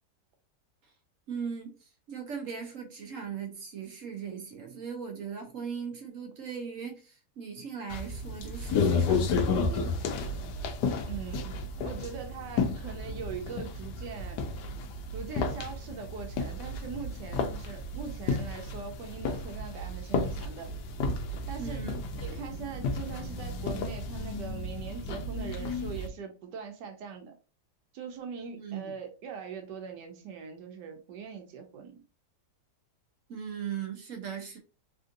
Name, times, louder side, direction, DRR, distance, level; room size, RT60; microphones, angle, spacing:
voice 1, 1.3-10.0 21.6-22.4 28.5-28.9 33.3-34.6, right 7 dB, 65° right, 0.8 m, -39 dB
sound 1, 7.9-26.1, left 3 dB, 85° left, 1.2 m, -32 dB
voice 2, 11.0-14.4 15.1-20.7 21.5-21.9 22.2-27.3 27.9-32.0, right 6 dB, 85° right, 1.3 m, -41 dB
3.4 x 2.5 x 2.5 m
omnidirectional pair, 1.8 m